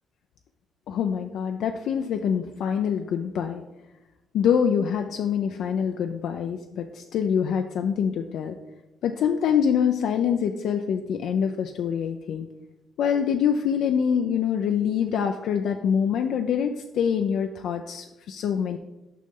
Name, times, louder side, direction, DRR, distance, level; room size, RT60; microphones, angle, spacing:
voice 1, 0.9-3.6 4.3-8.6 9.0-12.5 13.0-18.8, left 7 dB, 75° left, 5 dB, 0.4 m, -25 dB
6.6 x 5.2 x 3.7 m, 0.98 s
cardioid pair, 90°, 0 cm